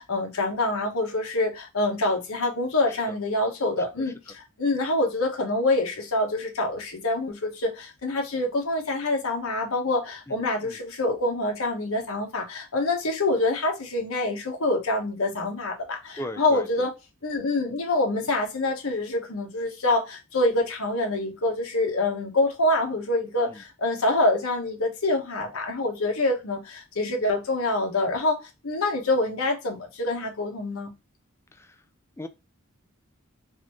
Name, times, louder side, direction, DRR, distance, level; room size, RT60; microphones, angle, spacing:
voice 1, 0.0-16.9 17.2-30.9, left 2 dB, 75° left, 1.1 m, -26 dB
voice 2, 10.3-10.8 16.2-16.9 23.5-23.6 31.5-31.8 32.2-32.3, left 1 dB, 10° left, 0.4 m, -39 dB
4.0 x 2.6 x 3.0 m
head